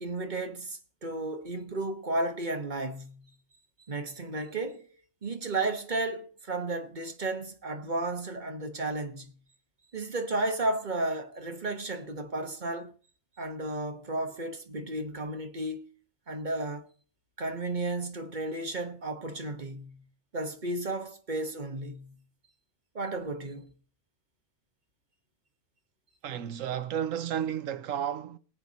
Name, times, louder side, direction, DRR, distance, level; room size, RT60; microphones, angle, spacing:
voice 1, 0.0-3.3 3.9-4.9 5.2-9.3 9.9-12.9 13.4-15.9 16.3-16.8 17.4-20.0 20.3-22.2 22.9-23.7, right 2 dB, 35° right, 1.3 m, -33 dB
voice 2, 26.2-28.4, right 9 dB, 75° right, 1.2 m, -32 dB
19.0 x 8.2 x 4.1 m
omnidirectional pair, 1.4 m